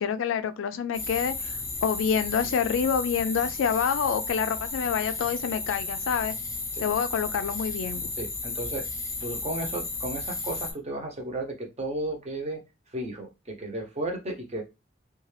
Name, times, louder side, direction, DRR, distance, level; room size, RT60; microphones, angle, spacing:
voice 1, 0.0-1.5 1.8-6.3 6.8-8.1, left 7 dB, 80° left, 0.3 m, -27 dB
sound 1, 0.9-10.7, left 3 dB, 15° left, 0.8 m, -34 dB
voice 2, 8.2-8.9 9.2-12.6 12.9-14.6, right 1 dB, 35° right, 0.8 m, -34 dB
2.5 x 2.3 x 3.2 m
head